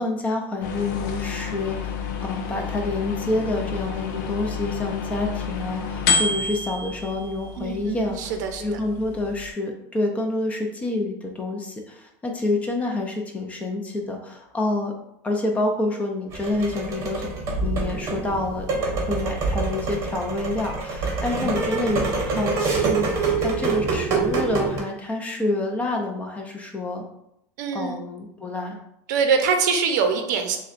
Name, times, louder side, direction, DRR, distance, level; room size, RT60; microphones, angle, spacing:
voice 1, 0.0-8.2 8.6-14.9 15.2-17.3 17.6-27.1 27.7-28.8, left 2 dB, 15° left, 2 dB, 0.5 m, -28 dB
sound 1, 0.6-9.5, left 5 dB, 85° left, 0.5 m, -29 dB
voice 2, 7.6-8.8 27.6-28.0 29.1-30.6, right 5 dB, 80° right, 6 dB, 0.6 m, -24 dB
sound 2, 16.3-24.8, right 4 dB, 30° right, 0.8 m, -26 dB
6.2 x 2.2 x 2.5 m, 0.80 s
supercardioid pair, 155°, 10 cm